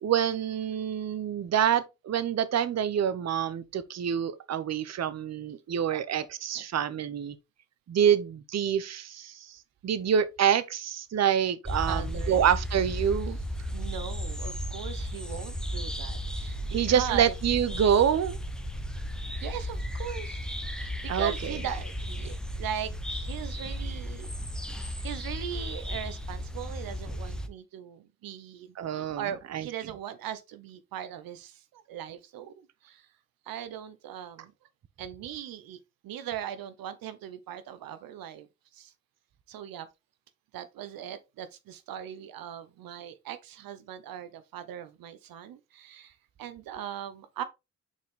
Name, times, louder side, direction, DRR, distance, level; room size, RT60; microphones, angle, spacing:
voice 1, 0.0-7.4 7.9-13.4 16.7-18.4 21.1-21.3 28.8-29.3 29.5-29.6, right 9 dB, 50° right, 0.8 m, -26 dB
voice 2, 5.9-6.3 6.5-6.6 11.9-12.5 13.7-17.3 19.3-24.3 24.6-33.1 33.4-34.5 35.0-38.5 38.7-38.9 39.5-39.9 40.5-47.4, right 10 dB, 80° right, 0.8 m, -39 dB
sound 1, 11.6-27.5, equal, ahead, 0.9 m, -34 dB
6.0 x 4.4 x 3.6 m
cardioid pair, 70°, 34 cm